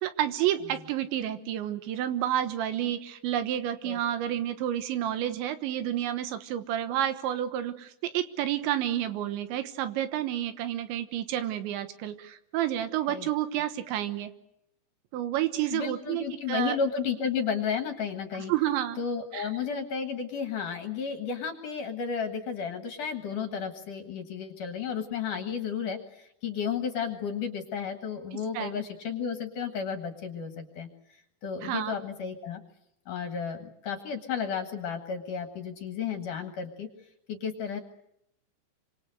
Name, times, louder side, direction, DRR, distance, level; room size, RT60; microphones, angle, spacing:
voice 1, 0.0-14.3 15.1-16.8 18.3-19.0 19.3-19.5 28.6-28.7 31.6-32.0, right 11 dB, 85° right, 10 dB, 3.5 m, -30 dB
voice 2, 15.7-18.5 19.0-32.6 33.1-36.9 37.3-37.8, left 6 dB, 60° left, 6 dB, 2.5 m, -33 dB
28.5 x 25.5 x 6.5 m, 0.79 s
omnidirectional pair, 5.2 m